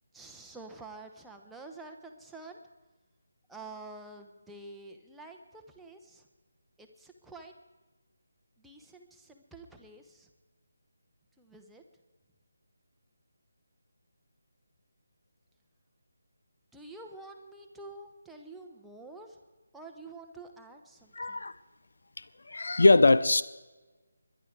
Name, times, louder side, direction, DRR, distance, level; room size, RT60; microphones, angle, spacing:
voice 1, 0.1-2.6 3.5-6.3 6.8-7.5 8.6-10.3 11.4-11.8 16.7-19.4 19.7-21.4, right 3 dB, 5° right, 1 dB, 1.0 m, -48 dB
voice 2, 21.2-21.5 22.5-23.4, left 2 dB, 55° left, 14 dB, 0.7 m, -21 dB
21.5 x 11.0 x 4.7 m, 1.2 s
figure-of-eight pair, 155°, 0 cm